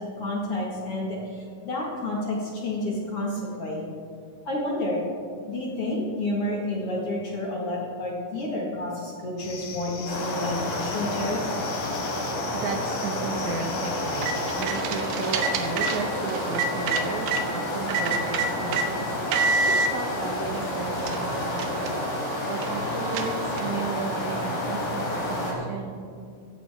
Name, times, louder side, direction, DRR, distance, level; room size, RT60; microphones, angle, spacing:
voice 1, 0.2-3.8 4.5-5.0 5.5-11.6, left 1 dB, 45° left, -3 dB, 2.2 m, -30 dB
sound 1, 9.4-14.6, left 5 dB, 85° left, 1.3 m, -39 dB
sound 2, 10.1-25.5, left 1 dB, 70° left, 5.4 m, -30 dB
voice 2, 12.2-19.0 19.2-26.0, right 4 dB, 70° right, 1 dB, 2.0 m, -34 dB
sound 3, 14.0-17.4 17.9-18.9 19.3-19.9 20.6-20.7 21.0-23.8, right 4 dB, 90° right, 2.9 m, -28 dB
15.5 x 14.5 x 3.6 m, 2.2 s
omnidirectional pair, 4.4 m